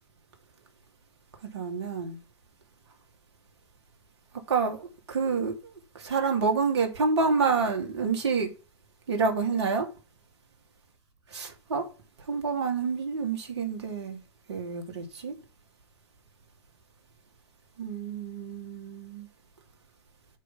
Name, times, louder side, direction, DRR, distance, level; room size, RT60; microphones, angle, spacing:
voice 1, 1.5-2.2 4.5-8.5 9.1-9.9 11.3-11.9 12.3-14.2 14.5-15.3 17.8-19.3, right 5 dB, 70° right, 2.7 m, -28 dB
7.3 x 5.0 x 5.6 m
hypercardioid pair, 100°, 15 cm